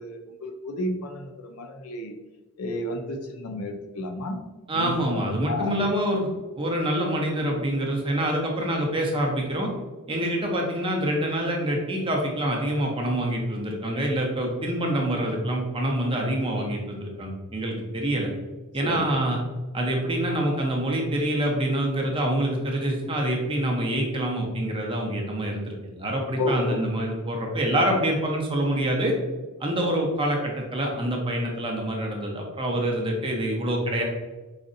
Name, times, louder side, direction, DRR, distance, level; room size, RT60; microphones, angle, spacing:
voice 1, 0.0-2.1 2.6-4.4 4.7-4.9 5.5-5.7 18.8-19.0 26.4-26.8, left 2 dB, 70° left, 3 dB, 0.5 m, -31 dB
voice 2, 4.7-6.3 6.6-9.7 10.1-18.3 18.7-19.4 19.7-29.1 29.6-34.0, right 1 dB, 25° right, 0 dB, 0.7 m, -26 dB
4.9 x 2.6 x 2.6 m, 1.2 s
head